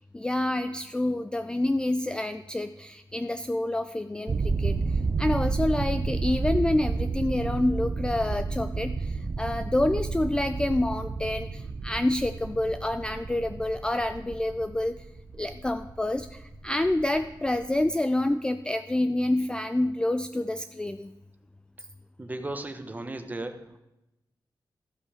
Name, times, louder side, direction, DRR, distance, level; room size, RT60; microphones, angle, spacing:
voice 1, 0.1-4.8 5.2-15.0 15.4-21.1, left 1 dB, 10° left, 9 dB, 0.3 m, -28 dB
sound 1, 4.3-17.9, right 4 dB, 35° right, 0.6 m, -31 dB
voice 2, 22.2-23.8, right 2 dB, 20° right, 7 dB, 1.0 m, -36 dB
15.5 x 5.4 x 4.9 m, 0.93 s
wide cardioid pair, 125°, 8 cm